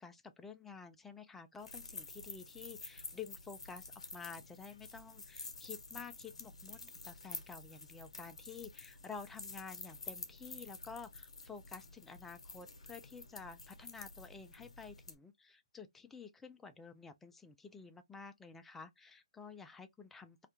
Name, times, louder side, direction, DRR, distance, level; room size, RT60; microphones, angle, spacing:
voice 1, 0.0-20.5, left 5 dB, 5° left, 0.3 m, -51 dB
sound 1, 1.6-15.1, left 3 dB, 80° left, 0.7 m, -50 dB
2.4 x 2.1 x 2.9 m
hypercardioid pair, 145°, 3 cm